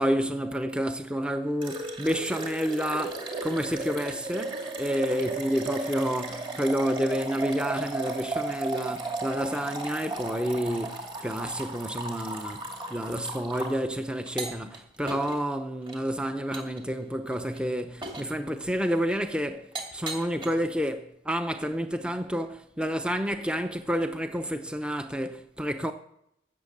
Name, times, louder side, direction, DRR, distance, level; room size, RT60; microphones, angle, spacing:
voice 1, 0.0-25.9, equal, 5° right, 0.7 m, -29 dB
sound 1, 1.6-13.8 14.3-14.8 15.1-15.4 15.9-16.0 16.5-16.8 17.3-17.6 18.0-18.3 19.1-19.2 19.7-20.5, right 2 dB, 25° right, 2.3 m, -35 dB
16.0 x 7.3 x 6.7 m
head